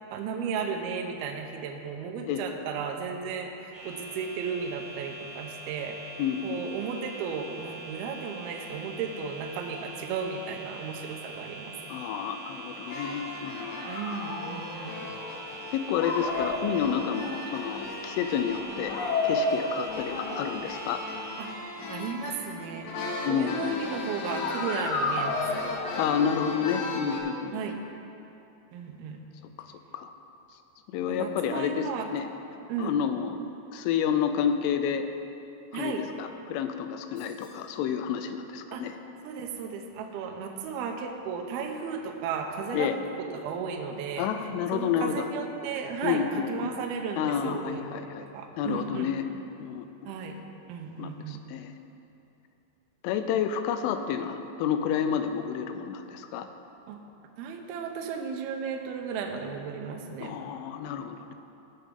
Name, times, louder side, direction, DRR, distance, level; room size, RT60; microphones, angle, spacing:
voice 1, 0.0-6.2 6.4-11.7 13.9-15.2 21.4-21.5 21.9-22.9 23.3-25.7 27.5-27.8 28.7-29.2 31.1-32.1 32.7-33.0 35.7-36.0 38.7-38.8 39.2-44.3 44.7-49.1 50.1-50.4 50.7-51.4 56.9-57.1 57.4-60.3, right 6 dB, 80° right, 2 dB, 2.3 m, -35 dB
sound 1, 3.7-21.5, right 2 dB, 55° right, 1.3 m, -43 dB
voice 2, 6.2-6.7 11.9-14.0 15.7-21.0 23.2-23.8 26.0-27.7 29.6-29.7 29.9-30.1 30.9-32.3 32.8-33.3 33.7-35.1 35.7-35.9 36.2-38.9 42.7-43.0 44.2-45.3 46.0-46.7 47.2-48.3 48.6-49.3 49.6-50.1 51.0-51.7 53.0-56.5 60.2-61.3, left 8 dB, 90° left, 8 dB, 3.2 m, -30 dB
sound 2, 12.9-27.2, left 2 dB, 75° left, 2.1 m, -33 dB
sound 3, 37.2-37.8, left 3 dB, 55° left, 2.9 m, -56 dB
17.5 x 7.0 x 3.7 m, 2.8 s
omnidirectional pair, 5.5 m